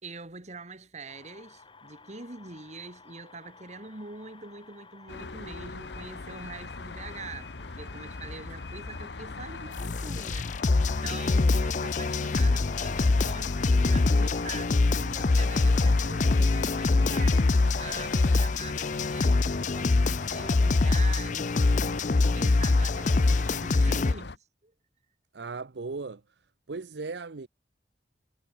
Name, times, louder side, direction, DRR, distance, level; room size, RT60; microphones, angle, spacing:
voice 1, 0.0-10.7 11.0-24.7, right 3 dB, 40° right, 2.2 m, -44 dB
sound 1, 1.1-14.0, left 4 dB, 30° left, 7.1 m, -54 dB
sound 2, 5.1-24.4, left 3 dB, 70° left, 1.1 m, -40 dB
sound 3, 9.8-24.1, left 3 dB, 45° left, 0.5 m, -24 dB
voice 2, 25.3-26.2 26.7-27.5, right 4 dB, 75° right, 0.7 m, -36 dB
head